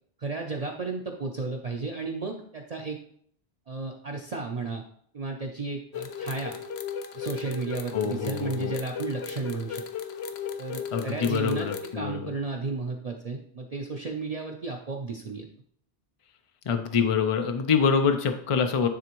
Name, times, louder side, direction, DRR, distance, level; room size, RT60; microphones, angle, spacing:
voice 1, 0.2-3.0 3.7-4.8 5.1-6.6 7.1-9.8 10.6-11.7 11.9-15.5, right 3 dB, 45° right, 0 dB, 0.6 m, -33 dB
sound 1, 5.9-11.9, left 7 dB, 75° left, 0.8 m, -36 dB
voice 2, 7.9-8.7 10.9-12.3 16.7-18.9, left 6 dB, 55° left, 6 dB, 0.3 m, -25 dB
10.0 x 3.4 x 3.0 m, 0.64 s
omnidirectional pair, 1.1 m